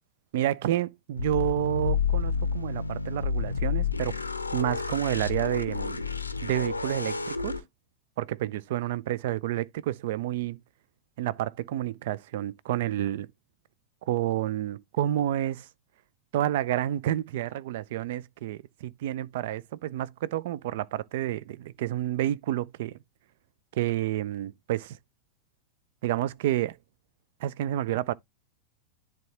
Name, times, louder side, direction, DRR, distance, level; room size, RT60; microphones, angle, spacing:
voice 1, 0.3-4.2 4.5-6.0 6.4-7.6 8.2-10.6 11.2-13.3 14.1-15.7 16.3-23.0 23.7-25.0 26.0-26.8 27.4-28.1, right 13 dB, 55° right, 0.4 m, -29 dB
sound 1, 1.2-7.6, left 5 dB, 80° left, 0.6 m, -30 dB
10.5 x 3.5 x 2.9 m
figure-of-eight pair, 90°, 0 cm